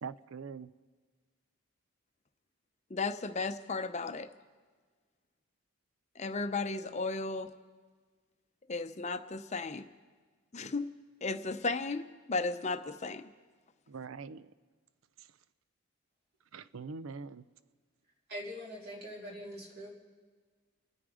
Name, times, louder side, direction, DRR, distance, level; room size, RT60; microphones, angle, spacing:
voice 1, 0.0-0.7 13.9-14.5 16.5-17.4, right 5 dB, 70° right, 15 dB, 0.5 m, -43 dB
voice 2, 2.9-4.3 6.2-7.5 8.7-9.9 10.5-10.9 11.2-13.3, left 3 dB, 30° left, 9 dB, 0.7 m, -35 dB
voice 3, 18.3-20.0, equal, 50° right, -2 dB, 3.1 m, -43 dB
29.5 x 9.9 x 4.9 m, 1.5 s
head